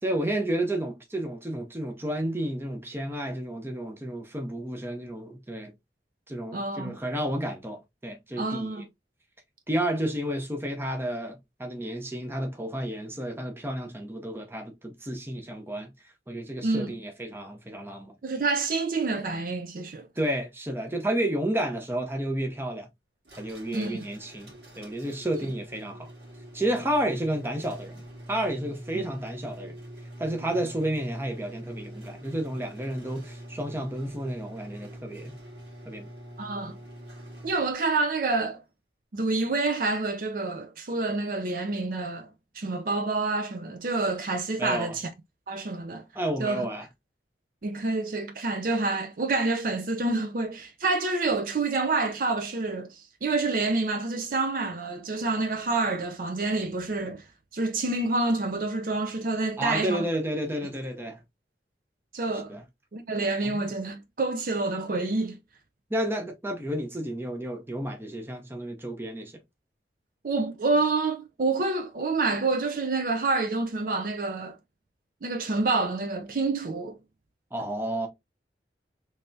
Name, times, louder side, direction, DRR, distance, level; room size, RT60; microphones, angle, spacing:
voice 1, 0.0-5.7 6.3-8.8 9.7-15.9 16.3-18.1 20.2-22.9 23.4-26.1 26.5-28.0 28.3-29.8 30.2-35.4 35.8-36.1 44.6-45.0 46.1-46.9 59.6-61.2 62.3-62.6 63.4-63.6 65.9-69.3 77.5-78.1, right 1 dB, 15° right, 0.7 m, -31 dB
voice 2, 6.5-7.0 8.4-8.8 16.6-16.9 18.2-20.1 23.7-24.1 28.9-29.0 36.4-36.8 37.4-38.6 39.1-42.3 42.5-45.1 45.5-46.0 46.4-46.7 47.6-57.2 57.5-60.1 62.1-62.5 62.9-65.4 70.2-74.6 75.2-77.0, right 3 dB, 50° right, 0.5 m, -28 dB
sound 1, 23.2-37.9, right 1 dB, 65° right, 1.8 m, -45 dB
3.3 x 3.3 x 2.6 m
head